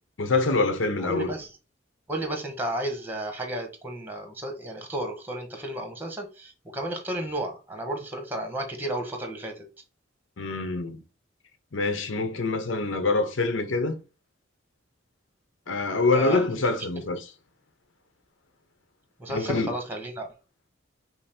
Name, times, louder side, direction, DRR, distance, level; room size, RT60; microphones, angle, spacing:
voice 1, 0.2-1.3 10.4-11.0 11.7-14.0 15.7-17.3 19.3-19.7, left 3 dB, 75° left, 0.9 m, -25 dB
voice 2, 1.0-1.5 2.1-9.6 16.1-16.4 19.2-20.3, right 1 dB, 10° right, 1.1 m, -33 dB
5.6 x 2.0 x 4.2 m
head